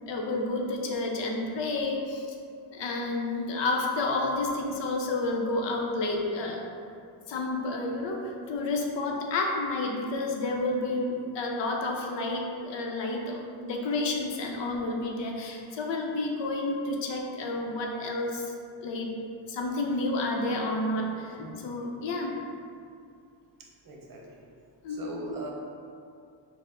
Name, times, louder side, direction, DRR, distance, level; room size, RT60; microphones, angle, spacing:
voice 1, 0.1-2.3 2.7-6.6 7.3-18.5 18.8-19.2 19.5-22.4 24.8-25.3, left 2 dB, 75° left, 1 dB, 0.6 m, -30 dB
voice 2, 23.8-24.2 24.9-25.5, right 2 dB, 50° right, -2 dB, 0.8 m, -40 dB
4.3 x 2.1 x 3.5 m, 2.4 s
cardioid pair, 80°, 44 cm